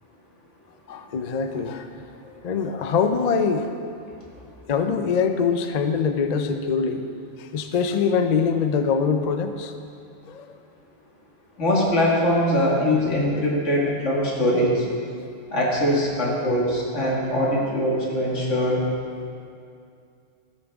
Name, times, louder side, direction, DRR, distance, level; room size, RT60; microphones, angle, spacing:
voice 1, 0.9-3.7 4.7-7.0 7.4-9.7 10.3-10.5, left 5 dB, 50° left, 7 dB, 0.5 m, -24 dB
voice 2, 11.6-14.8 15.5-18.8, left 1 dB, 80° left, -4 dB, 2.3 m, -22 dB
14.0 x 8.6 x 3.5 m, 2.4 s
omnidirectional pair, 1.2 m